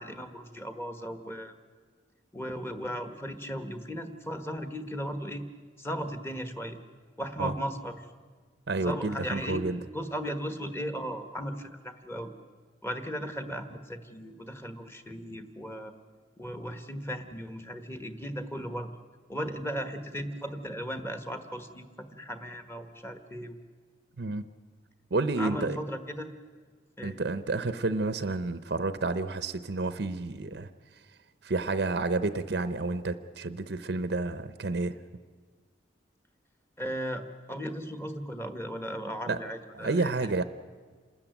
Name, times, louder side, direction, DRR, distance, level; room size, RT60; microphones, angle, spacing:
voice 1, 0.0-1.5 2.3-5.5 5.8-6.8 7.2-8.1 8.7-9.7 9.9-12.3 12.8-15.9 16.4-18.9 19.3-23.6 25.4-26.3 27.0-27.2 36.8-40.3, equal, 15° left, 8 dB, 1.2 m, -36 dB
voice 2, 8.7-9.8 24.2-24.5 25.1-25.8 27.0-30.7 31.4-35.0 39.3-39.4 39.7-40.4, right 3 dB, 60° right, 11 dB, 0.7 m, -30 dB
27.5 x 13.0 x 9.3 m, 1.6 s
head